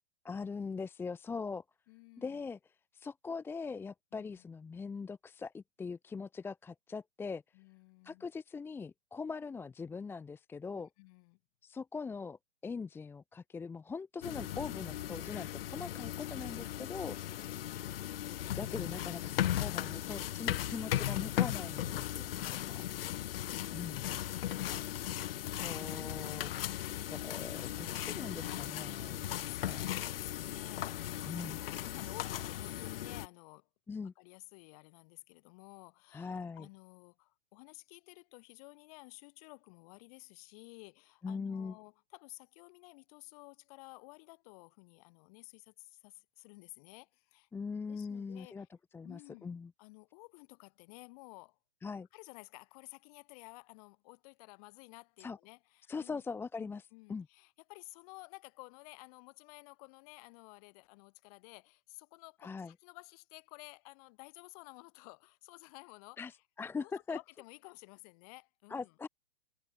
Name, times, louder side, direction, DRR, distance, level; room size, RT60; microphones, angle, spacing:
voice 1, 0.2-1.6 2.2-7.4 8.0-10.9 11.6-17.2 18.6-22.8 23.7-24.2 25.6-29.9 31.2-31.6 33.9-34.1 36.1-36.7 41.2-41.7 47.5-48.7 48.9-49.7 51.8-52.1 55.2-55.4 55.9-57.3 62.4-62.7 66.2-67.2 68.7-69.1, left 5 dB, 5° left, 1.0 m, -42 dB
voice 2, 1.9-2.4 4.1-4.5 7.5-8.3 10.7-11.4 17.3-18.7 29.1-33.7 34.0-47.5 47.9-48.7 49.0-49.5 49.8-51.6 52.1-56.2 56.6-66.3 66.8-68.9, left 27 dB, 40° left, 5.3 m, -54 dB
sound 1, 14.2-33.3, left 12 dB, 70° left, 0.6 m, -37 dB
hypercardioid pair, 150°, 30 cm